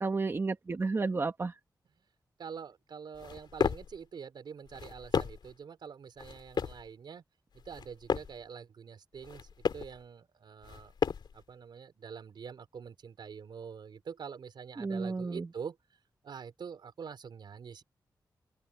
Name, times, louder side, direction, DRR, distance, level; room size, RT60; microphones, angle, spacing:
voice 1, 0.0-1.5 14.8-15.4, right 3 dB, 35° right, 1.7 m, -32 dB
voice 2, 2.4-7.2 7.5-10.9 11.3-15.8 16.2-17.8, right 6 dB, 85° right, 5.0 m, -45 dB
sound 1, 3.1-4.0 4.6-5.5 6.2-6.9 7.6-8.4 9.1-10.0 10.6-11.4, left 6 dB, 80° left, 2.9 m, -34 dB
wide cardioid pair, 145°, 8 cm